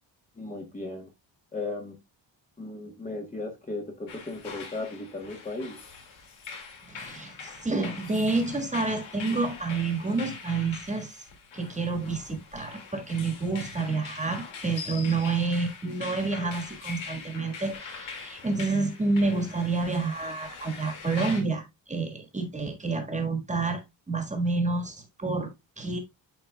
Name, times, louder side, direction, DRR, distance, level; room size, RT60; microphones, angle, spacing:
voice 1, 0.4-1.1 1.5-2.0 2.6-5.8, left 2 dB, 15° left, 1.1 m, -36 dB
sound 1, 4.1-21.4, left 5 dB, 75° left, 2.2 m, -43 dB
voice 2, 6.9-11.2 11.5-26.0, right 3 dB, 15° right, 1.5 m, -29 dB
11.0 x 4.1 x 2.2 m
cardioid pair, 150°, 46 cm